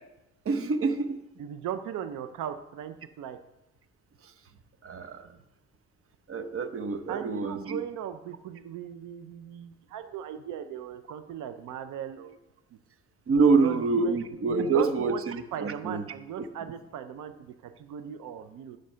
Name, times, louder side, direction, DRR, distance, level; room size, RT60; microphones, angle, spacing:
voice 1, 0.4-1.2 4.2-4.3 4.8-5.3 6.3-7.8 13.3-16.0 16.4-16.5, right 4 dB, 45° right, 10 dB, 1.0 m, -26 dB
voice 2, 1.4-3.4 7.1-12.4 13.5-15.2 15.5-18.8, right 9 dB, 85° right, 10 dB, 0.7 m, -38 dB
10.5 x 6.6 x 5.6 m, 0.90 s
cardioid pair, 90°, 30 cm